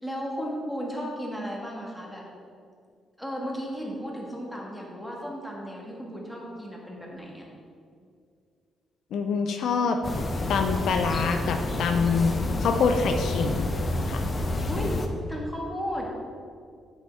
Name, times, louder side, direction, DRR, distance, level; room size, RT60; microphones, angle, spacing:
voice 1, 0.0-2.2 3.2-7.5 14.7-14.9 15.3-16.0, equal, 5° left, -3 dB, 1.7 m, -34 dB
voice 2, 9.1-10.0 10.5-12.3 12.6-13.6 14.1-14.2, left 5 dB, 70° left, 5 dB, 0.4 m, -25 dB
sound 1, 10.0-15.1, left 2 dB, 35° left, 0.7 m, -29 dB
8.1 x 6.3 x 3.5 m, 2.3 s
cardioid pair, 90°, 0 cm